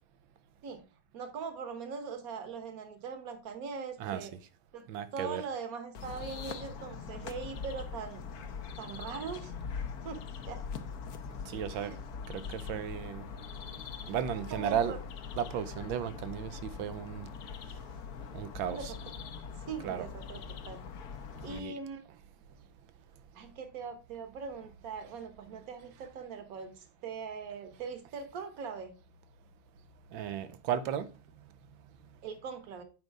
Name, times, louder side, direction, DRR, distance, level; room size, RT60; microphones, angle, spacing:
voice 1, 1.1-4.3 4.7-4.8 5.1-8.2 8.8-9.5 10.0-10.6 11.7-12.0 14.3-15.0 18.7-19.1 19.7-20.8 21.4-22.0 23.3-28.9 32.2-32.8, right 5 dB, 50° right, 1.5 m, -41 dB
voice 2, 4.0-4.4 4.9-5.4 11.4-11.9 12.3-13.2 14.1-15.0 15.4-17.3 18.3-18.9 19.8-20.1 21.5-21.7 30.1-31.1, right 9 dB, 75° right, 1.4 m, -35 dB
sound 1, 5.9-21.6, left 6 dB, 60° left, 1.1 m, -42 dB
8.0 x 5.1 x 4.6 m
omnidirectional pair, 2.3 m